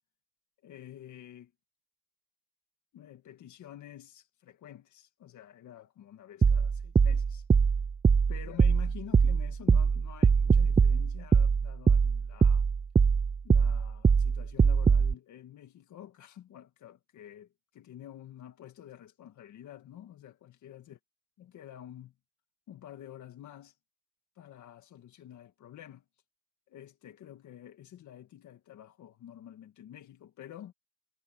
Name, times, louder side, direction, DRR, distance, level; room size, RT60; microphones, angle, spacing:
voice 1, 0.6-1.5 2.9-7.5 8.3-12.7 13.4-21.0 21.4-22.1 22.7-23.8 24.4-26.0 26.7-30.7, left 11 dB, 75° left, 2.0 m, -49 dB
sound 1, 6.4-15.1, right 5 dB, 20° right, 0.4 m, -23 dB
cardioid pair, 90°, 30 cm